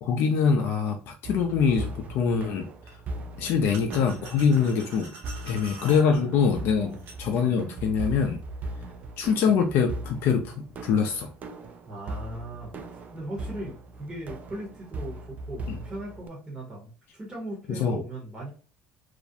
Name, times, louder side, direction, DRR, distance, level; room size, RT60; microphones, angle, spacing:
voice 1, 0.0-2.7 3.4-5.1 5.4-8.4 9.2-11.3 15.7-15.8 17.7-18.0, left 6 dB, 60° left, 3 dB, 0.4 m, -24 dB
sound 1, 1.2-16.3, right 2 dB, 35° right, 0.3 m, -39 dB
sound 2, 1.6-1.8 2.9-3.0 3.7-6.0 6.9-7.2, right 4 dB, 65° right, 0.8 m, -45 dB
voice 2, 6.0-6.4 6.7-7.1 11.9-18.5, right 1 dB, 20° right, -4 dB, 0.8 m, -39 dB
2.4 x 2.0 x 2.6 m, 0.39 s
cardioid pair, 120°, 4 cm